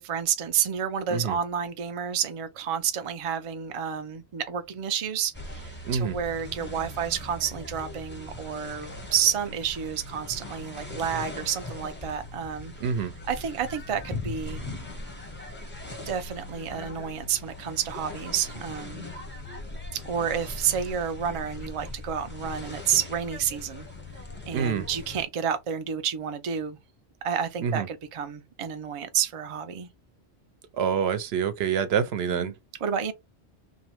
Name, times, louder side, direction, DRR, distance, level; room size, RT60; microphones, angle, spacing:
voice 1, 0.0-12.7 13.3-14.6 16.1-19.1 19.9-23.9 24.5-26.8 27.2-29.9 32.3-32.5 32.8-33.1, right 8 dB, 50° right, 0.4 m, -30 dB
sound 1, 5.3-25.2, left 2 dB, 15° left, 0.5 m, -40 dB
voice 2, 5.9-6.2 12.8-13.1 24.5-24.9 27.6-27.9 30.7-32.5, right 7 dB, 75° right, 0.8 m, -26 dB
2.6 x 2.0 x 2.9 m
omnidirectional pair, 1.1 m